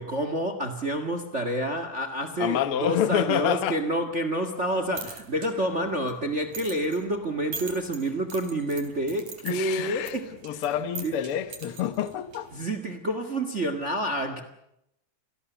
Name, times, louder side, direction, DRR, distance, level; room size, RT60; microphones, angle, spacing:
voice 1, 0.0-10.6 11.0-11.2 12.5-14.4, right 1 dB, 25° right, 1.9 m, -29 dB
voice 2, 2.4-3.8 9.4-10.2 10.4-12.5, left 10 dB, 60° left, 1.8 m, -27 dB
sound 1, 4.7-12.7, right 4 dB, 85° right, 5.1 m, -43 dB
29.0 x 18.5 x 8.1 m
omnidirectional pair, 3.4 m